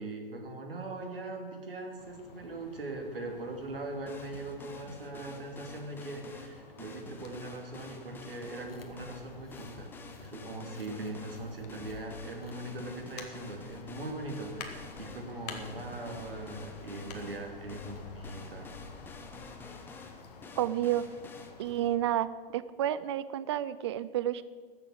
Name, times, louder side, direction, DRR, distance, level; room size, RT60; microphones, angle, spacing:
voice 1, 0.0-9.9 10.2-18.7, right 2 dB, 65° right, 3 dB, 2.8 m, -40 dB
sound 1, 2.0-22.0, left 5 dB, 40° left, 1.7 m, -50 dB
sound 2, 4.1-21.5, left 3 dB, 5° left, 0.8 m, -50 dB
sound 3, 8.4-20.6, left 3 dB, 70° left, 1.9 m, -58 dB
voice 2, 20.6-21.0 21.6-22.3 22.5-24.4, right 12 dB, 30° right, 16 dB, 0.5 m, -30 dB
13.5 x 7.1 x 9.1 m, 1.5 s
figure-of-eight pair, 115°, 30 cm